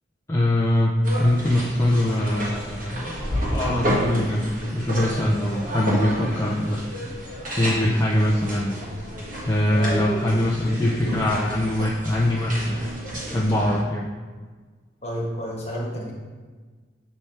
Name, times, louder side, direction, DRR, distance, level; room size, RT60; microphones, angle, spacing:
voice 1, 0.3-4.5 4.7-6.9 7.6-8.8 9.4-12.8 13.3-14.1, left 1 dB, 15° left, -4 dB, 0.4 m, -23 dB
sound 1, 1.0-13.8, equal, 45° right, 1.4 m, -30 dB
voice 2, 15.0-16.1, equal, 35° left, -3 dB, 1.2 m, -30 dB
7.0 x 3.3 x 4.3 m, 1.4 s
head